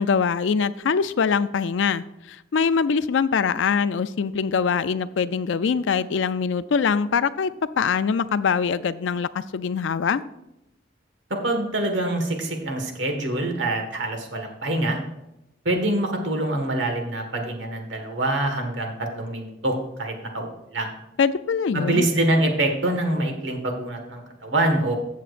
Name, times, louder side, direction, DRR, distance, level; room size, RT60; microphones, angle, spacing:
voice 1, 0.0-7.5 7.8-10.2 21.2-22.1, left 6 dB, 80° left, 14 dB, 0.4 m, -23 dB
voice 2, 11.3-15.0 15.6-20.9 21.7-24.9, right 1 dB, 75° right, 4 dB, 1.7 m, -25 dB
14.5 x 7.4 x 2.5 m, 0.88 s
head